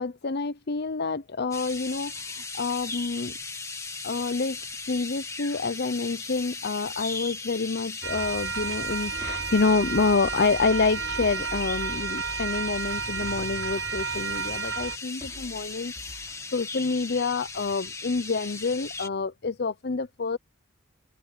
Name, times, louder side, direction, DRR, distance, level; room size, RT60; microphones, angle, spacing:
voice 1, 0.0-3.3 4.0-4.6 4.9-15.9 16.5-20.4, left 4 dB, 55° left, 0.7 m, -27 dB
sound 1, 1.5-19.1, left 4 dB, 15° left, 2.3 m, -38 dB
sound 2, 8.0-15.0, right 6 dB, 75° right, 6.2 m, -32 dB
sound 3, 9.2-17.1, equal, 20° right, 3.8 m, -47 dB
open air
head